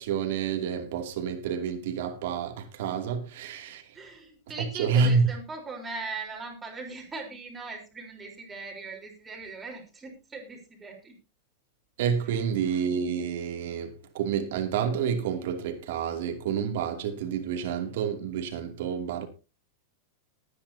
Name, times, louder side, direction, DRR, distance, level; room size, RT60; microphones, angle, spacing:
voice 1, 0.0-4.0 4.7-5.3 12.0-19.3, right 6 dB, 60° right, 2.5 m, -29 dB
voice 2, 3.9-11.2, right 3 dB, 10° right, 3.9 m, -40 dB
21.0 x 9.6 x 2.8 m
supercardioid pair, 175°, 0 cm